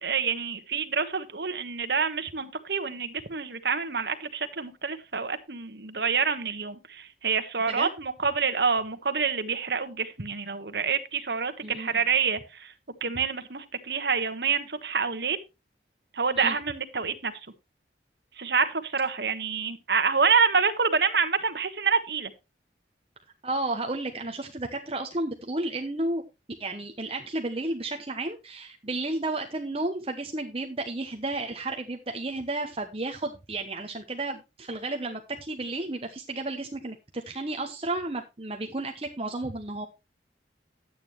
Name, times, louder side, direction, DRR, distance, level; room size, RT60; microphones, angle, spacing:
voice 1, 0.0-12.7 13.0-15.4 16.1-17.3 18.4-22.3, right 5 dB, 65° right, 9 dB, 1.4 m, -27 dB
voice 2, 11.6-12.0 16.4-16.6 23.4-26.2 26.6-39.9, right 2 dB, 30° right, 3 dB, 0.9 m, -32 dB
11.5 x 8.9 x 3.1 m, 0.26 s
head